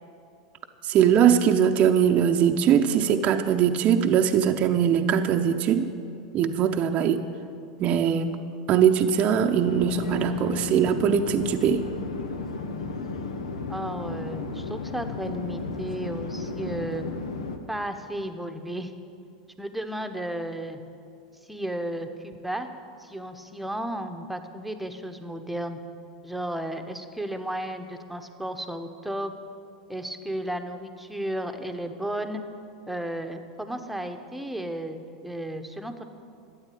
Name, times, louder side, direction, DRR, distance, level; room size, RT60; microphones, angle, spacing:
voice 1, 0.8-5.9 6.3-7.2 7.8-8.4 8.7-11.9, right 8 dB, 40° right, 5 dB, 0.8 m, -21 dB
Conversation / Chatter / Fixed-wing aircraft airplane, 9.6-17.6, left 3 dB, 80° left, 1.1 m, -34 dB
voice 2, 13.7-17.1 17.7-18.9 19.6-20.8 21.5-22.7 23.0-25.8 26.2-29.3 29.9-32.4 32.9-36.0, right 1 dB, 5° right, 6 dB, 1.1 m, -33 dB
13.0 x 9.1 x 8.6 m, 2.5 s
hypercardioid pair, 95°, 3 cm